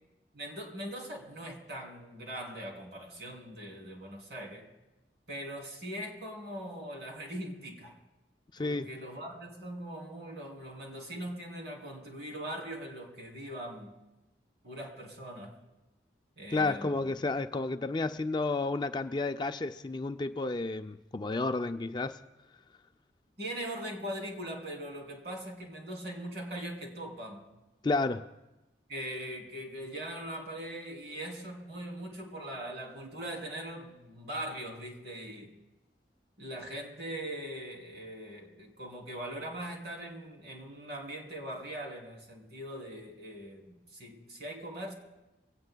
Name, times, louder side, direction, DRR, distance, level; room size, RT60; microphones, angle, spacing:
voice 1, 0.3-4.7 5.3-8.0 8.6-13.9 14.6-15.6 16.4-17.0 23.4-27.5 28.9-35.6 36.4-43.6 43.9-44.9, right 1 dB, 70° right, 3.1 m, -41 dB
voice 2, 8.5-8.9 16.5-22.2 27.8-28.3, left 3 dB, 25° left, 0.4 m, -31 dB
24.0 x 17.5 x 2.3 m
head